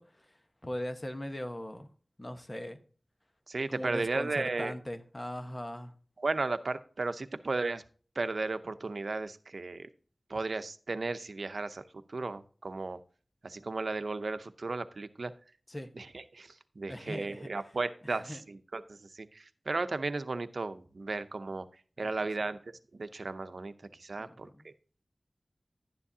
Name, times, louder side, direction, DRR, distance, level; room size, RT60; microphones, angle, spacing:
voice 1, 0.0-1.9 2.2-2.8 3.7-5.9 15.7-15.9 16.9-17.5 18.0-18.4 22.0-22.1 24.2-24.6, left 1 dB, 30° left, 7 dB, 1.1 m, -40 dB
voice 2, 3.5-4.7 6.2-7.8 8.2-9.9 10.3-13.0 13.4-15.3 16.0-21.7 22.0-22.6 22.9-24.7, right 3 dB, 85° right, 11 dB, 0.7 m, -35 dB
12.0 x 9.8 x 2.8 m, 0.40 s
wide cardioid pair, 60°, 0 cm